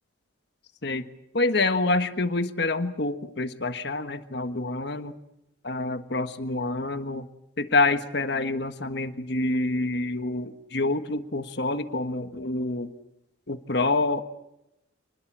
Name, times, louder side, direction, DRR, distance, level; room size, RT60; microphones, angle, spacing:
voice 1, 1.3-5.1 5.6-7.3 7.6-12.9 13.5-14.2, left 2 dB, 55° left, 9 dB, 1.4 m, -27 dB
28.5 x 21.0 x 7.4 m, 0.85 s
head